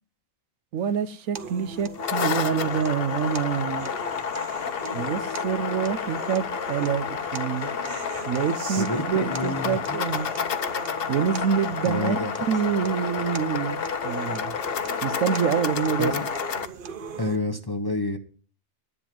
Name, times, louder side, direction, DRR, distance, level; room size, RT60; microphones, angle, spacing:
voice 1, 0.7-3.9 4.9-7.7 8.3-10.3 11.1-13.8 14.0-14.5 15.0-16.1, right 8 dB, 80° right, 1.1 m, -26 dB
sound 1, 1.4-17.4, right 4 dB, 50° right, 0.8 m, -40 dB
sound 2, 1.8-16.7, left 7 dB, 55° left, 0.8 m, -30 dB
voice 2, 9.3-9.8 11.8-12.3 16.0-16.3 17.2-18.2, left 2 dB, 20° left, 0.8 m, -28 dB
10.5 x 9.0 x 5.9 m
omnidirectional pair, 1.4 m